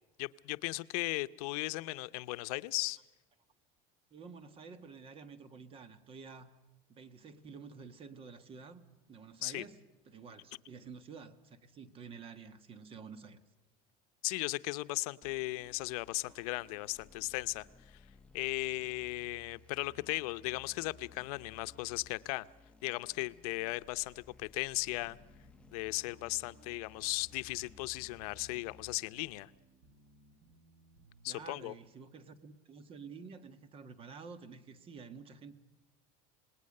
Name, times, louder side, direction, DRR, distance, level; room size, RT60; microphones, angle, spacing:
voice 1, 0.2-3.0 9.4-9.6 14.2-18.0 18.3-22.5 22.8-25.2 25.7-29.5 31.2-31.7, left 21 dB, 85° left, 0.7 m, -37 dB
voice 2, 4.1-6.6 6.9-8.8 9.1-9.8 10.1-13.4 16.3-16.5 17.0-17.1 31.3-35.5, right 5 dB, 30° right, 1.4 m, -50 dB
sound 1, 15.2-29.0, left 3 dB, 5° left, 1.0 m, -60 dB
sound 2, 24.9-31.4, right 1 dB, 85° right, 6.2 m, -63 dB
27.0 x 20.0 x 6.6 m
cardioid pair, 150°, 18 cm